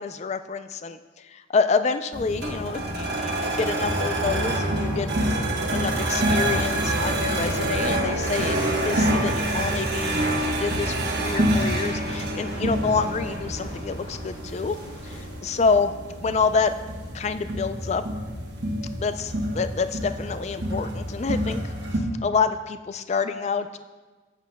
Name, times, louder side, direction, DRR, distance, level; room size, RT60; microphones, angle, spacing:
voice 1, 0.0-5.1 5.7-8.6 8.8-14.8 15.0-15.9 16.2-16.7 17.1-18.0 19.0-23.8, left 5 dB, 35° left, 11 dB, 0.3 m, -27 dB
sound 1, 2.1-22.0, right 1 dB, 60° right, 1.1 m, -27 dB
sound 2, 6.2-15.4, equal, 50° left, 1.7 m, -43 dB
10.5 x 8.3 x 2.2 m, 1.3 s
head